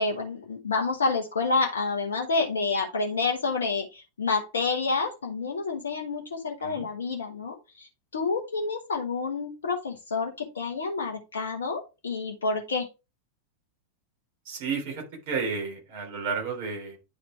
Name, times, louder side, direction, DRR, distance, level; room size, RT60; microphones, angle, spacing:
voice 1, 0.0-12.9, left 4 dB, 70° left, 2 dB, 1.0 m, -29 dB
voice 2, 14.4-17.0, right 5 dB, 50° right, 2 dB, 3.3 m, -32 dB
9.8 x 4.3 x 3.3 m, 0.28 s
figure-of-eight pair, 90°, 0 cm